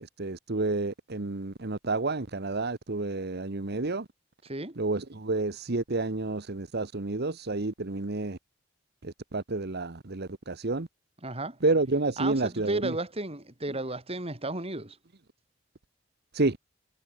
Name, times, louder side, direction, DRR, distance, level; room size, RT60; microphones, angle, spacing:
voice 1, 0.0-4.1 4.8-8.4 9.0-10.9 11.6-13.0 16.3-16.6, right 3 dB, 55° right, 1.2 m, -30 dB
voice 2, 4.4-4.8 11.2-11.6 12.2-15.0, right 2 dB, 30° right, 5.4 m, -34 dB
head